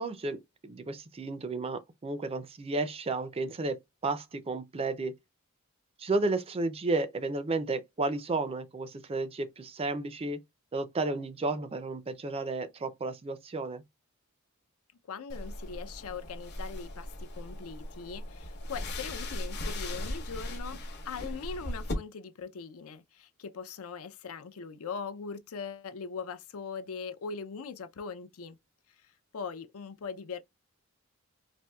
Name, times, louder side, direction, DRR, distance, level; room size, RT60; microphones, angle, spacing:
voice 1, 0.0-3.8 4.0-5.1 6.0-10.4 10.7-13.8, right 3 dB, 25° right, 0.4 m, -32 dB
voice 2, 15.1-28.6 29.0-30.4, left 5 dB, 70° left, 0.5 m, -41 dB
sound 1, 15.3-21.9, left 1 dB, 50° left, 0.8 m, -38 dB
4.3 x 2.6 x 2.2 m
head